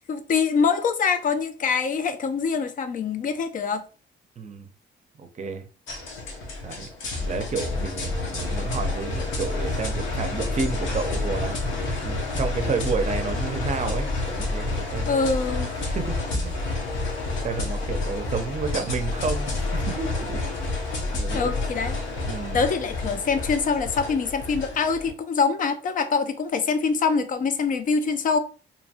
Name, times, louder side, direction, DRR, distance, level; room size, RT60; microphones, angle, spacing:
voice 1, 0.0-3.8 15.1-15.7 21.3-22.0 22.5-28.4, left 5 dB, 45° left, 0.4 m, -24 dB
voice 2, 4.4-4.7 5.2-5.7 6.6-6.9 7.2-11.6 12.0-15.2 15.8-16.5 17.4-21.5 22.3-22.6, right 5 dB, 35° right, 0.5 m, -31 dB
sound 1, 5.9-25.1, left 2 dB, 80° left, 0.8 m, -29 dB
2.7 x 2.2 x 2.8 m
cardioid pair, 90°, 20 cm